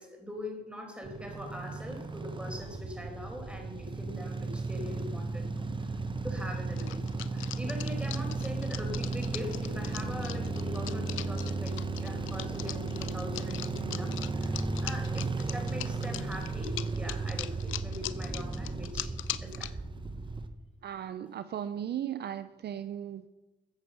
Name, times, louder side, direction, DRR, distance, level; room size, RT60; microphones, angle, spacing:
voice 1, 0.0-6.0 6.2-19.1 19.4-19.7, left 1 dB, 5° right, 1 dB, 4.9 m, -42 dB
sound 1, 1.0-20.5, right 3 dB, 25° right, 1.2 m, -35 dB
sound 2, 6.8-19.7, left 15 dB, 85° left, 0.6 m, -40 dB
voice 2, 20.8-23.3, right 10 dB, 55° right, 12 dB, 0.6 m, -36 dB
14.0 x 8.5 x 6.9 m, 1.0 s
cardioid pair, 90°, 20 cm